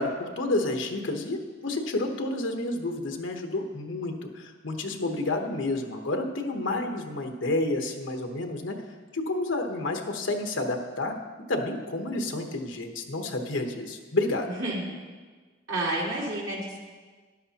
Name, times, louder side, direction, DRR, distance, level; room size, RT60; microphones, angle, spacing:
voice 1, 0.0-8.8 9.1-11.1 11.5-14.5, left 2 dB, 70° left, 4 dB, 1.1 m, -30 dB
voice 2, 14.5-14.9 15.7-16.8, right 1 dB, 70° right, -5 dB, 2.6 m, -30 dB
13.0 x 11.0 x 2.9 m, 1.4 s
head